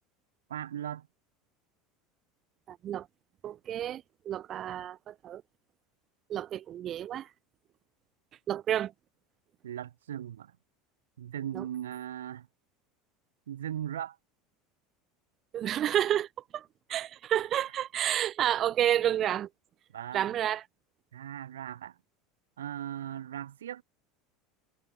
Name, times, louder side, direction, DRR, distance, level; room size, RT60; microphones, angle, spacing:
voice 1, 0.5-1.1 9.6-10.5 11.2-12.5 13.5-14.2 19.9-20.3 21.1-22.0 22.6-23.8, right 10 dB, 85° right, 5.7 m, -38 dB
voice 2, 2.7-3.1 3.4-5.4 6.3-7.3 8.5-8.9 11.5-11.6 15.5-19.5 20.1-20.6, right 11 dB, 45° right, 1.8 m, -30 dB
hypercardioid pair, 85°, 0 cm